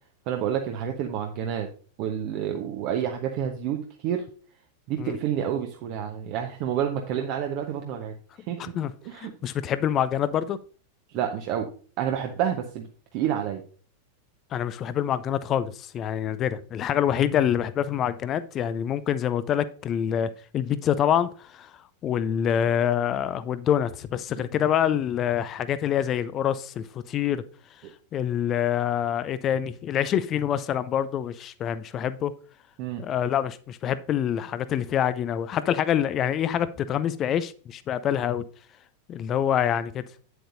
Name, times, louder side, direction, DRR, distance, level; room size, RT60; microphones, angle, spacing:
voice 1, 0.3-1.7 2.0-4.3 4.9-8.1 8.5-8.7 9.0-9.3 11.1-11.7 12.0-13.6 27.8-27.9 32.8-33.0, right 9 dB, 45° right, 0.9 m, -29 dB
voice 2, 8.6-8.9 9.2-10.6 14.5-21.7 22.0-27.4 28.1-32.3 33.0-38.4 39.1-40.0, left 9 dB, 30° left, 0.5 m, -26 dB
9.3 x 7.8 x 2.6 m
figure-of-eight pair, 90°, 0 cm